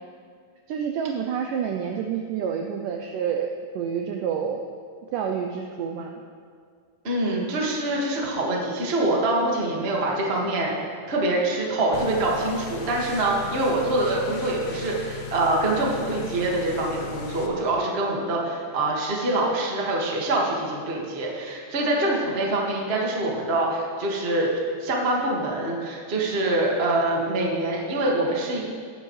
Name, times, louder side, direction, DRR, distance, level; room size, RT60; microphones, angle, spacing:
voice 1, 0.7-4.6 5.1-6.2, right 7 dB, 80° right, 3 dB, 1.9 m, -28 dB
voice 2, 7.0-10.7 11.1-24.5 24.8-28.6, right 2 dB, 35° right, -3 dB, 0.9 m, -25 dB
sound 1, 11.9-17.5, left 5 dB, 70° left, 2.0 m, -38 dB
16.5 x 10.0 x 3.2 m, 2.1 s
omnidirectional pair, 4.4 m